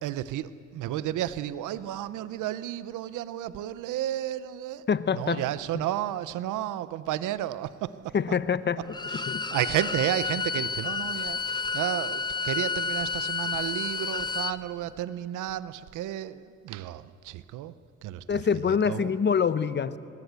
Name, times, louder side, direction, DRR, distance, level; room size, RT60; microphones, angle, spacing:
voice 1, 0.0-4.8 5.1-8.1 9.1-17.7 18.0-18.4 18.9-19.2, right 12 dB, 85° right, 15 dB, 0.8 m, -32 dB
voice 2, 4.9-5.4 8.1-8.8 9.3-9.4 18.3-20.0, left 6 dB, 35° left, 14 dB, 0.9 m, -25 dB
Bowed string instrument, 8.9-14.6, left 4 dB, 15° left, 0.8 m, -31 dB
25.5 x 18.0 x 8.1 m, 2.4 s
cardioid pair, 90°, 30 cm